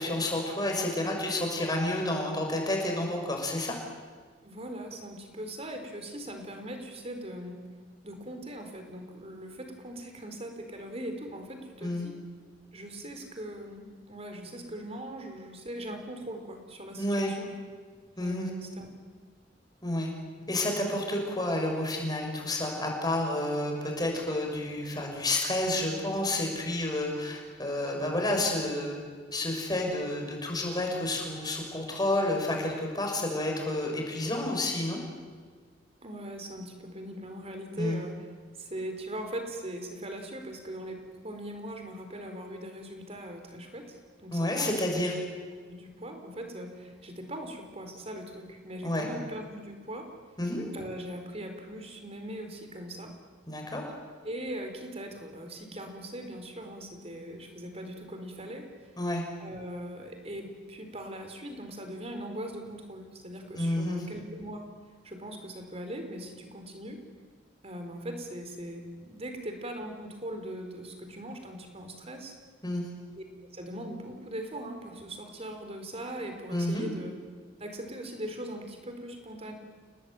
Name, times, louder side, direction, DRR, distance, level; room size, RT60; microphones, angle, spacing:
voice 1, 0.0-3.7 11.8-12.1 17.0-17.3 18.2-18.5 19.8-20.1 20.5-29.0 29.3-35.0 37.8-38.0 44.3-45.2 48.8-49.1 50.4-50.7 53.5-53.8 59.0-59.2 63.6-64.0 72.6-72.9 76.5-76.9, left 1 dB, 20° left, 1 dB, 6.3 m, -30 dB
voice 2, 4.4-7.6 8.0-12.1 12.7-17.5 18.2-18.9 36.0-38.2 38.6-45.1 45.7-50.1 50.7-53.1 54.2-58.6 59.4-64.6 65.0-67.0 67.6-72.3 73.2-73.3 73.5-77.1 77.6-79.5, right 1 dB, 35° right, 5 dB, 4.5 m, -40 dB
30.0 x 18.5 x 9.2 m, 1.5 s
head